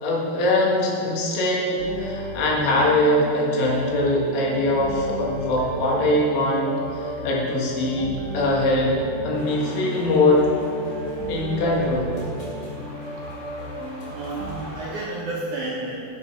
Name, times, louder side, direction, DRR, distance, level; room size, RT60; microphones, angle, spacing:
voice 1, 0.0-9.0 9.2-10.5 11.3-12.1, left 1 dB, 90° left, -3 dB, 4.0 m, -22 dB
sound 1, 1.8-14.6, right 1 dB, 50° right, 2.5 m, -34 dB
sound 2, 9.3-15.1, left 1 dB, 60° left, 4.3 m, -42 dB
voice 2, 14.1-15.9, right 2 dB, 75° right, -5 dB, 1.8 m, -31 dB
11.0 x 8.2 x 4.3 m, 2.7 s
omnidirectional pair, 5.0 m